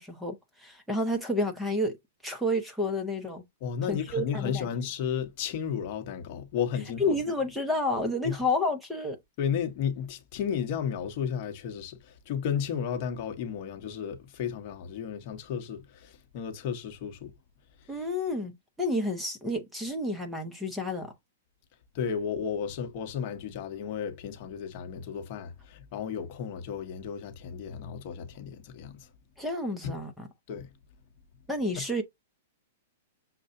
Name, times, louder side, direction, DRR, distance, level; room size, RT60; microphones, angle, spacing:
voice 1, 0.0-2.0 2.2-3.4 3.9-4.7 7.0-9.2 17.9-21.1 29.4-30.3 31.5-32.0, left 1 dB, ahead, 0.8 m, -30 dB
voice 2, 3.6-7.2 8.2-8.4 9.4-17.3 21.9-29.0 29.8-29.9 30.5-30.7, left 7 dB, 45° left, 1.0 m, -33 dB
6.6 x 2.3 x 2.6 m
hypercardioid pair, 155°, 0 cm